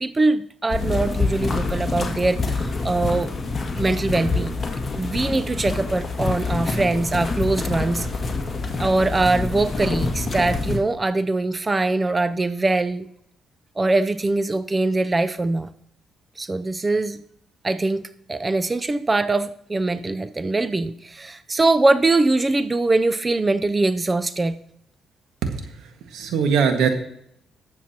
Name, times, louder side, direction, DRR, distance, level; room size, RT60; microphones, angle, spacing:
voice 1, 0.0-3.3 3.8-4.6 5.0-8.1 8.8-13.1 13.8-15.7 16.4-17.2 17.6-18.0 18.3-24.6, right 2 dB, 25° right, 11 dB, 0.5 m, -22 dB
sound 1, 0.7-10.8, left 3 dB, 30° left, 1.9 m, -26 dB
voice 2, 25.4-26.9, right 6 dB, 85° right, 5 dB, 1.6 m, -22 dB
19.5 x 7.3 x 2.9 m, 0.73 s
cardioid pair, 90°, 0 cm